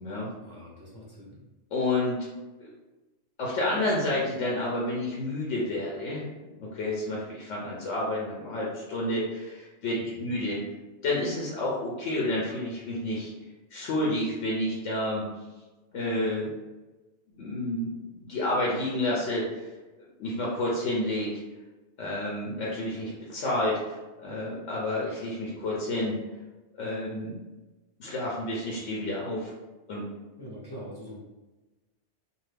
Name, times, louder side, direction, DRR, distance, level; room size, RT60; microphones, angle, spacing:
voice 1, 0.4-1.4 9.9-10.3 30.4-31.2, equal, 25° left, -6 dB, 0.7 m, -44 dB
voice 2, 1.7-2.2 2.6-2.7 3.4-6.2 6.6-10.6 11.0-13.3 13.7-15.2 15.9-16.5 17.4-19.7 20.2-21.3 22.0-26.1 26.8-27.3 28.0-29.5 29.9-30.0, left 1 dB, 85° left, -4 dB, 1.0 m, -30 dB
2.7 x 2.4 x 3.2 m, 1.1 s
omnidirectional pair, 1.2 m